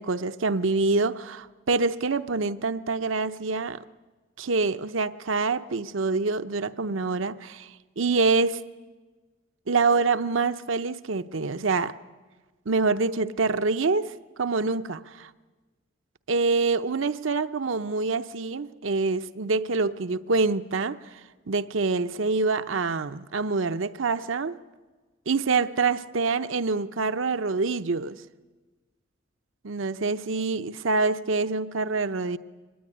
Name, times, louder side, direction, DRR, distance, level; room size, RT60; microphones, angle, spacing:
voice 1, 0.0-3.8 4.4-7.7 8.0-8.6 9.7-11.9 12.7-14.1 14.4-15.3 16.3-21.2 21.5-24.6 25.3-28.2 29.6-32.4, right 4 dB, 70° right, 0.8 m, -26 dB
24.0 x 20.0 x 9.9 m
head